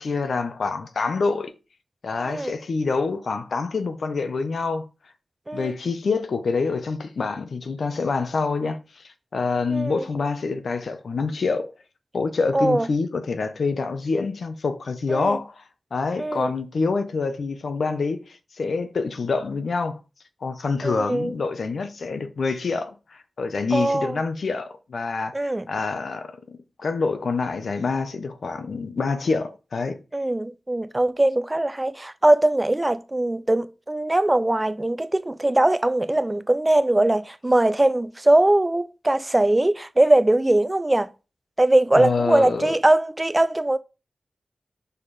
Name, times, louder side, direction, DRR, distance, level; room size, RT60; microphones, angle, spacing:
voice 1, 0.0-1.5 2.0-4.9 5.5-11.7 12.1-15.6 15.9-20.0 20.4-25.3 25.7-30.0 41.9-42.7, left 4 dB, 75° left, 0.9 m, -26 dB
voice 2, 2.2-2.5 5.5-5.7 9.7-10.0 12.5-12.9 15.1-15.4 16.2-16.5 20.8-21.3 23.7-24.2 25.3-25.7 30.1-41.1 41.6-43.8, right 1 dB, 20° right, 0.6 m, -21 dB
5.5 x 4.4 x 4.8 m
wide cardioid pair, 95°, 0 cm